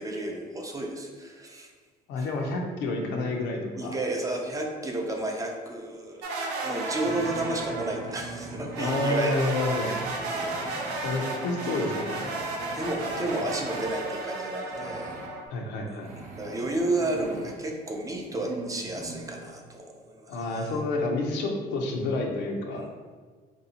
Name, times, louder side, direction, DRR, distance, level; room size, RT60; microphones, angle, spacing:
voice 1, 0.0-1.7 2.2-2.3 3.8-6.2 6.6-9.4 10.3-10.5 12.7-15.1 16.0-20.8 22.7-22.9, right 2 dB, 20° right, 1 dB, 0.4 m, -32 dB
voice 2, 2.1-4.0 8.8-9.9 11.0-12.2 15.5-16.1 20.3-22.8, left 2 dB, 85° left, 1 dB, 0.6 m, -29 dB
sound 1, 6.2-8.1 8.7-15.5, right 2 dB, 85° right, 0.5 m, -33 dB
sound 2, 7.0-9.0 9.7-11.0 11.8-13.9 14.7-15.3 16.0-17.5 18.3-19.5, right 3 dB, 50° right, 0.7 m, -42 dB
3.3 x 2.7 x 2.7 m, 1.5 s
cardioid pair, 110°, 17 cm